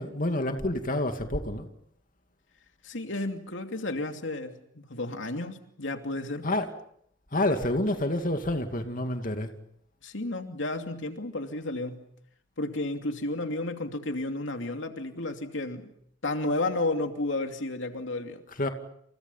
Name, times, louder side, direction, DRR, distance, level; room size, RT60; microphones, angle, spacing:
voice 1, 0.0-1.7 6.4-6.7 7.3-9.5 18.6-18.7, left 1 dB, 45° left, 2.5 m, -28 dB
voice 2, 2.8-6.5 10.0-12.1 12.6-15.9 16.2-18.4, left 2 dB, 90° left, 2.7 m, -32 dB
29.5 x 29.5 x 5.7 m
head